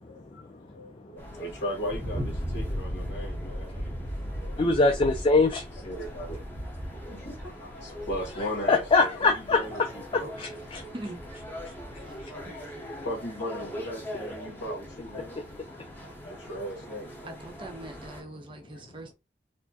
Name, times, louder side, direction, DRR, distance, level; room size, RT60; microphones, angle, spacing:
voice 1, 0.0-3.8 5.8-6.8 7.1-10.3 10.8-10.9 11.8-15.4 15.7-17.4 18.2-18.3, equal, 70° left, 1.4 m, -38 dB
sound 1, 1.2-18.2, equal, 10° left, 0.9 m, -38 dB
voice 2, 4.6-5.6 8.6-9.6 10.4-10.8 12.2-12.3, left 3 dB, 30° left, 0.4 m, -23 dB
voice 3, 17.2-19.1, right 1 dB, 30° right, 0.8 m, -41 dB
4.3 x 2.1 x 2.8 m
head